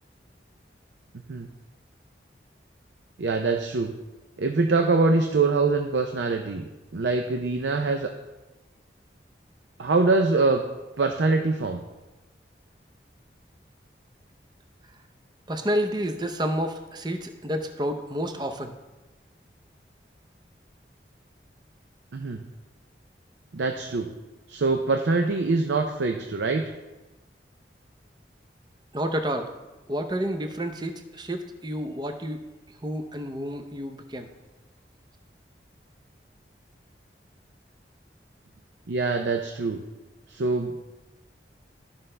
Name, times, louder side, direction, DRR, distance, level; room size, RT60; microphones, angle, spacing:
voice 1, 3.2-3.9 4.4-8.1 9.8-10.6 11.0-11.8 22.1-22.4 23.5-24.1 24.5-26.6 38.9-39.8 40.3-40.7, right 3 dB, 85° right, 5 dB, 0.5 m, -24 dB
voice 2, 15.5-18.7 28.9-29.5 29.9-32.4 32.8-34.3, equal, 25° right, 6 dB, 0.6 m, -29 dB
13.0 x 5.5 x 3.3 m, 1.1 s
head